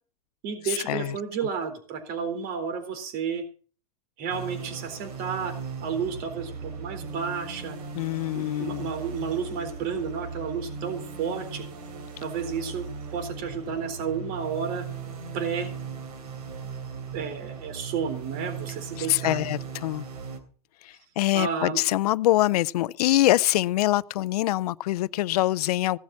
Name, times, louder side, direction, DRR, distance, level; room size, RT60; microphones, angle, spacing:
voice 1, 0.4-3.4 4.2-5.5 5.8-7.8 8.3-11.6 12.2-14.8 15.3-15.7 17.1-19.4 21.3-21.8, right 6 dB, 50° right, 3.7 m, -31 dB
sound 1, 4.3-20.4, right 5 dB, 80° right, 3.1 m, -38 dB
voice 2, 7.9-8.9 19.0-20.1 20.8-26.0, left 15 dB, 80° left, 0.6 m, -24 dB
16.5 x 7.2 x 7.5 m
supercardioid pair, 125°, 19 cm